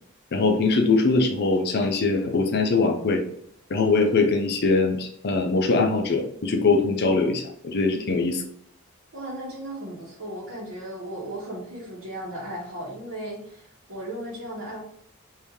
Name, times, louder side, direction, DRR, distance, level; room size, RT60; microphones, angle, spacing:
voice 1, 0.3-3.2 3.7-8.4, left 3 dB, 50° left, 3 dB, 0.5 m, -22 dB
voice 2, 9.1-14.8, right 1 dB, 65° right, -7 dB, 1.1 m, -36 dB
3.0 x 2.7 x 3.5 m, 0.70 s
head